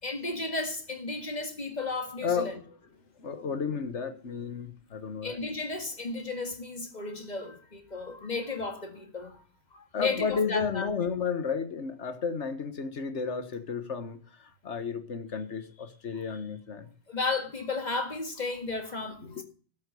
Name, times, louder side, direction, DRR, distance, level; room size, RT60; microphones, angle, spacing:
voice 1, 0.0-2.6 5.2-9.4 9.7-10.9 17.1-19.4, left 3 dB, 35° left, 2.1 m, -34 dB
voice 2, 2.2-2.5 3.2-5.4 9.9-16.9 19.2-19.4, left 5 dB, 70° left, 1.7 m, -32 dB
12.5 x 7.3 x 6.9 m
omnidirectional pair, 1.2 m